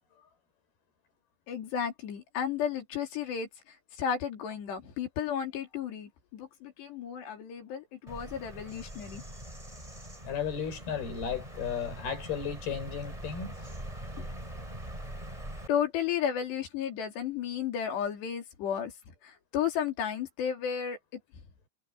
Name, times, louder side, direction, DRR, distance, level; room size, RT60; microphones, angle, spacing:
voice 1, 1.5-9.2 14.2-14.3 15.7-18.9 19.2-21.0, left 8 dB, 85° left, 5.5 m, -33 dB
Bird vocalization bird call bird song, 8.1-15.7, right 1 dB, 10° right, 4.4 m, -42 dB
voice 2, 10.2-13.6, left 7 dB, 65° left, 6.6 m, -34 dB
omnidirectional pair, 4.7 m